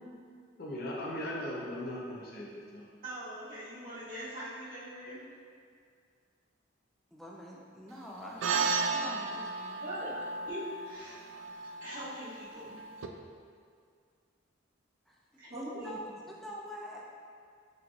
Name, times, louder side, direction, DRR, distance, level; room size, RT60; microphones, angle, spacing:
voice 1, 0.6-2.9, left 1 dB, 50° left, -4 dB, 0.6 m, -38 dB
voice 2, 3.0-5.3 9.8-10.1 10.5-11.2 11.8-12.8 15.4-16.0, right 1 dB, 50° right, -13 dB, 1.4 m, -42 dB
voice 3, 7.1-9.8 10.1-10.2 15.1-15.2 15.5-17.1, equal, ahead, -3 dB, 0.4 m, -45 dB
sound 1, 8.4-13.1, right 4 dB, 75° right, 0.3 m, -34 dB
6.0 x 3.1 x 2.4 m, 2.2 s
head